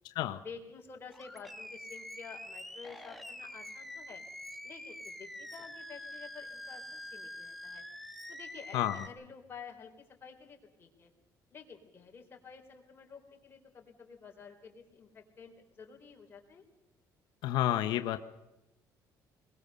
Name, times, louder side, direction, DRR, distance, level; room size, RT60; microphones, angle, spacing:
voice 1, 0.4-4.2 4.6-7.8 8.3-11.1 11.5-16.6, left 6 dB, 30° left, 1 dB, 4.0 m, -50 dB
Animal, 1.1-9.1, left 1 dB, ahead, 1.3 m, -46 dB
voice 2, 8.7-9.1 17.4-18.2, left 13 dB, 90° left, 9 dB, 0.9 m, -30 dB
21.5 x 20.5 x 6.8 m, 0.99 s
cardioid pair, 130°, 7 cm